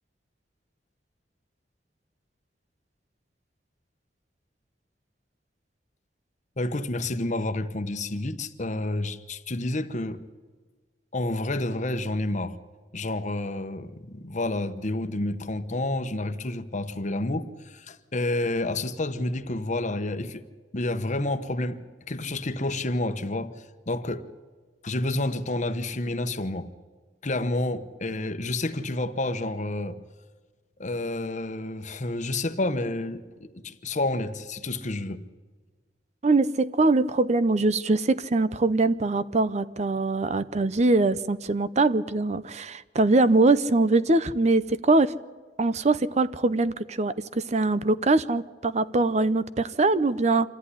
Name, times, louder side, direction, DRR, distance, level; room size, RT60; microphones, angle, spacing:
voice 1, 6.6-10.2 11.1-12.6 12.9-20.4 20.7-23.5 23.9-24.3 24.8-26.7 27.2-30.0 30.8-35.2, left 2 dB, 45° left, 1.1 m, -29 dB
voice 2, 36.2-45.1 45.6-50.5, right 2 dB, 40° right, 0.6 m, -23 dB
26.5 x 14.0 x 9.9 m
head